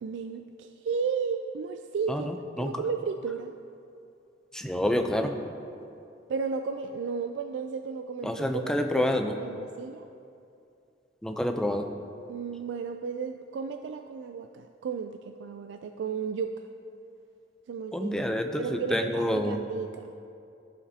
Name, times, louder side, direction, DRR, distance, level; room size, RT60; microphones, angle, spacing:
voice 1, 0.0-2.3 2.6-3.6 6.3-10.1 12.3-16.6 17.7-18.3 18.6-20.1, right 5 dB, 75° right, 6 dB, 0.3 m, -34 dB
voice 2, 2.1-2.8 4.5-5.4 8.2-9.3 11.2-11.9 17.9-19.6, left 1 dB, 5° left, 4 dB, 0.4 m, -28 dB
15.0 x 5.0 x 2.8 m, 2.6 s
head